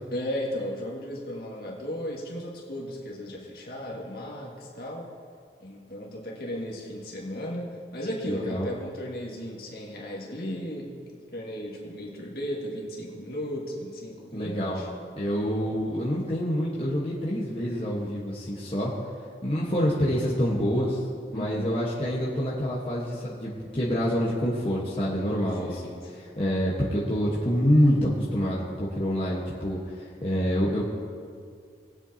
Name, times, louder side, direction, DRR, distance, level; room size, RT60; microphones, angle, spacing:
voice 1, 0.1-5.1 5.6-14.9 21.3-21.8 25.3-26.1, equal, 55° left, -2 dB, 2.0 m, -35 dB
voice 2, 8.3-8.7 14.3-14.8 15.2-18.9 19.4-21.0 21.3-30.8, equal, 30° left, -6 dB, 1.3 m, -27 dB
20.0 x 7.9 x 2.8 m, 2.3 s
head